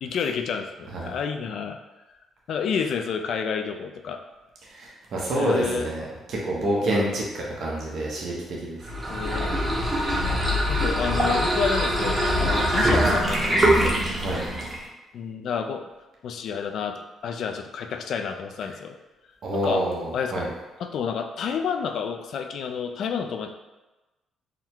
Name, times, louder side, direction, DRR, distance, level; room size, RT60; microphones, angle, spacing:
voice 1, 0.0-1.8 2.5-4.2 5.3-5.9 6.8-7.1 9.1-9.6 10.7-14.0 15.1-15.9 16.2-19.0 19.5-19.9 20.1-20.5 20.8-23.5, left 6 dB, 70° left, 6 dB, 0.3 m, -30 dB
voice 2, 4.7-8.8 14.2-14.4 19.4-20.5, right 1 dB, 60° right, -4 dB, 0.9 m, -27 dB
sound 1, 8.8-14.9, equal, 25° right, 1.0 m, -23 dB
3.7 x 2.2 x 4.4 m, 1.1 s
cardioid pair, 90°, 0 cm